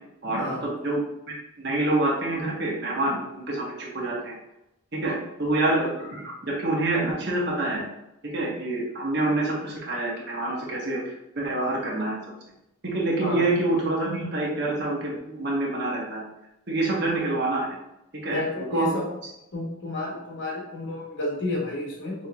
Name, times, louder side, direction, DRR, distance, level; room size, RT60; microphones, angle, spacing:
voice 1, 0.2-1.0 1.6-4.3 4.9-5.1 5.4-7.8 8.3-12.2 12.8-16.2 16.7-17.8 18.2-18.4 18.7-19.0, right 2 dB, 50° right, -4 dB, 1.2 m, -26 dB
voice 2, 18.3-19.0 19.5-22.3, left 1 dB, 60° left, -3 dB, 1.2 m, -31 dB
5.8 x 2.9 x 2.4 m, 0.87 s
head